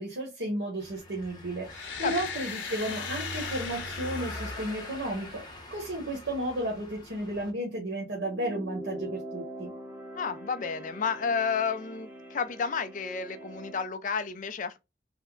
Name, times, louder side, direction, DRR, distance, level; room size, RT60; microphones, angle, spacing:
voice 1, 0.0-9.7, right 1 dB, 80° right, 1.1 m, -33 dB
Car passing by / Engine, 0.8-7.5, left 1 dB, 25° left, 0.8 m, -43 dB
sound 1, 1.7-5.6, left 5 dB, 90° left, 0.8 m, -38 dB
sound 2, 8.2-13.9, equal, 10° right, 0.7 m, -43 dB
voice 2, 10.1-14.8, left 5 dB, 45° left, 0.4 m, -31 dB
3.5 x 2.1 x 3.6 m
head